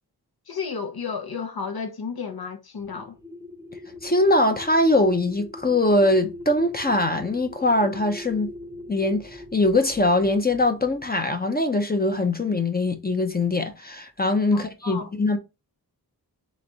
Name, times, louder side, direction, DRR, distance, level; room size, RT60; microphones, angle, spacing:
voice 1, 0.5-3.2 14.5-15.1, left 5 dB, 65° left, 0.7 m, -32 dB
sound 1, 2.8-11.1, left 2 dB, 10° right, 0.7 m, -42 dB
voice 2, 4.0-8.5 8.9-15.4, left 2 dB, 25° left, 0.6 m, -22 dB
3.4 x 3.1 x 4.0 m
wide cardioid pair, 75°, 40 cm